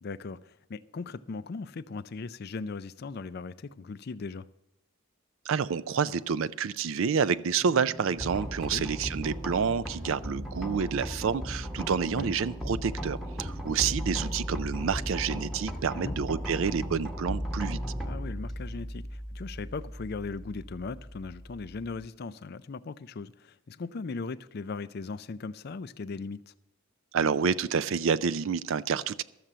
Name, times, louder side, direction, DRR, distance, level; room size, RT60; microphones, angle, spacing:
voice 1, 0.0-4.5 8.5-8.9 12.1-12.3 15.9-16.2 18.0-26.5, left 4 dB, 45° left, 0.4 m, -38 dB
voice 2, 5.5-17.8 27.1-29.2, right 6 dB, 65° right, 0.4 m, -28 dB
sound 1, 7.6-15.0, right 1 dB, 40° right, 0.9 m, -49 dB
sound 2, 8.2-22.0, equal, ahead, 1.1 m, -36 dB
12.5 x 7.5 x 6.7 m
head